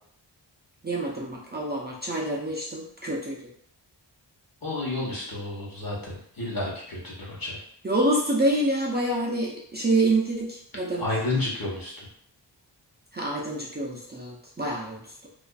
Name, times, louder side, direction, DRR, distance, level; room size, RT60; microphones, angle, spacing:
voice 1, 0.8-3.5 7.8-11.1 13.1-15.1, right 2 dB, 25° right, -4 dB, 0.4 m, -27 dB
voice 2, 4.6-7.6 11.0-12.1, left 2 dB, 50° left, -4 dB, 1.0 m, -31 dB
2.4 x 2.4 x 2.2 m, 0.64 s
wide cardioid pair, 60°, 44 cm